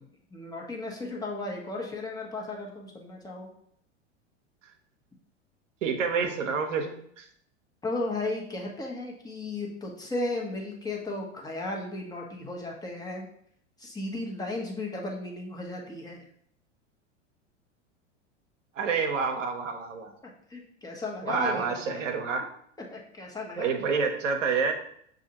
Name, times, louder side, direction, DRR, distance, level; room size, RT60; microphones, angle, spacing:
voice 1, 0.3-3.5 7.8-13.3 13.8-16.2 20.2-22.0 22.9-23.7, left 2 dB, 10° left, -1 dB, 0.9 m, -35 dB
voice 2, 5.8-7.3 18.8-20.1 21.2-22.5 23.6-24.7, right 5 dB, 85° right, 5 dB, 0.8 m, -28 dB
6.3 x 2.5 x 2.8 m, 0.67 s
hypercardioid pair, 100°, 36 cm